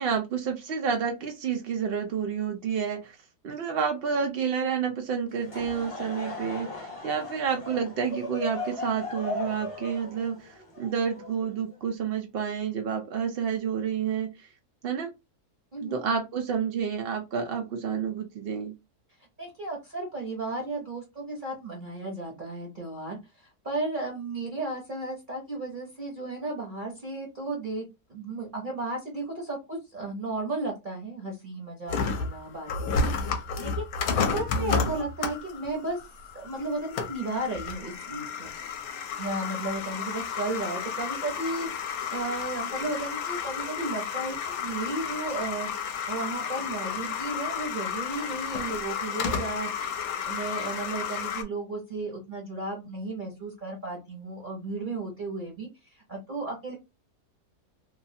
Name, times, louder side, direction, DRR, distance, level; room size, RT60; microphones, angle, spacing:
voice 1, 0.0-3.2 3.4-14.5 14.8-15.1 15.8-18.7 34.5-34.9, right 6 dB, 90° right, 0.5 m, -29 dB
Laughter / Crowd, 5.3-11.7, left 2 dB, 30° left, 0.6 m, -37 dB
voice 2, 19.4-27.8 28.1-36.0 36.3-38.5 39.2-45.7 46.1-49.7 50.2-56.7, right 2 dB, 45° right, 0.7 m, -34 dB
sound 1, 31.9-51.4, left 6 dB, 75° left, 1.0 m, -32 dB
3.0 x 2.3 x 2.6 m
omnidirectional pair, 1.7 m